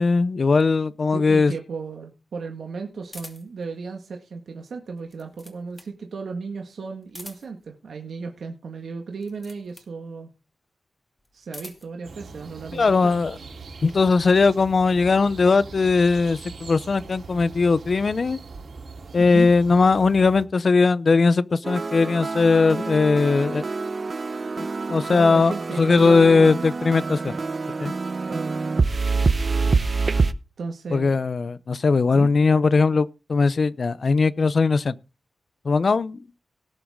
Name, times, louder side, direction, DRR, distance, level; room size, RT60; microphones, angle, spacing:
voice 1, 0.0-1.5 12.7-13.3 13.8-18.4 19.1-23.6 24.9-27.4 27.8-27.9 30.9-35.0 35.6-36.4, left 4 dB, 55° left, 0.6 m, -19 dB
voice 2, 1.1-10.3 11.3-13.2 19.2-19.5 25.1-26.6 28.3-28.6 30.6-31.2 32.1-32.3, right 4 dB, 90° right, 1.8 m, -35 dB
sound 1, 3.1-3.6 4.9-6.0 7.0-7.7 9.1-10.0 11.2-12.0, left 1 dB, 20° left, 2.5 m, -44 dB
sound 2, 12.0-20.5, right 4 dB, 75° right, 3.3 m, -41 dB
sound 3, 21.6-30.3, right 4 dB, 45° right, 0.8 m, -26 dB
18.5 x 7.1 x 3.7 m
wide cardioid pair, 90°, 0 cm